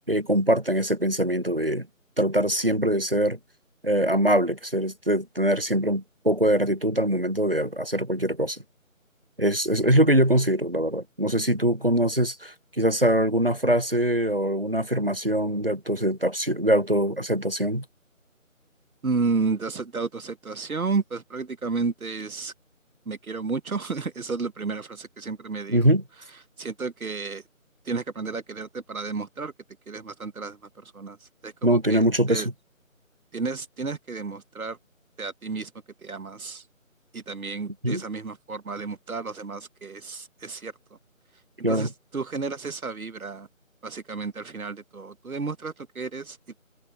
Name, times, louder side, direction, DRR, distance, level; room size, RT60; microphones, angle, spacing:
voice 1, 0.1-1.9 2.2-3.4 3.8-8.6 9.4-17.8 25.7-26.0 31.6-32.4 37.8-38.0 41.6-41.9, right 1 dB, 45° right, 0.4 m, -23 dB
voice 2, 19.0-22.5 23.1-25.9 26.2-27.5 27.8-29.5 29.9-32.5 33.3-34.8 35.2-35.7 36.0-36.7 37.1-40.7 41.3-43.5 43.8-46.6, right 4 dB, 90° right, 1.0 m, -32 dB
figure-of-eight pair, 170°, 41 cm